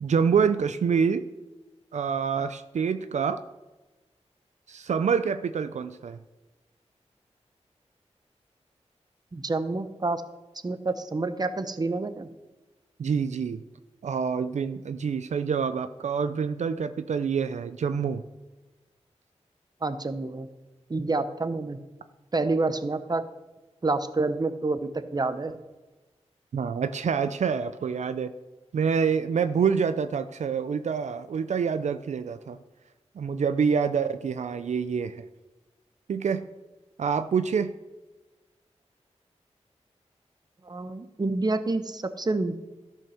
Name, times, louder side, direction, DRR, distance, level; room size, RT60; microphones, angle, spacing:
voice 1, 0.0-1.2 1.9-3.4 4.7-6.2 13.0-13.6 14.0-18.2 26.5-28.3 28.7-32.6 33.2-35.3 36.1-36.5 37.0-37.7, right 6 dB, 80° right, 11 dB, 0.5 m, -26 dB
voice 2, 9.3-10.2 10.6-12.3 19.8-20.5 20.9-21.8 22.3-23.2 23.8-25.6 40.6-42.5, right 3 dB, 35° right, 11 dB, 0.8 m, -28 dB
13.0 x 5.5 x 6.3 m, 1.1 s
cardioid pair, 60°, 12 cm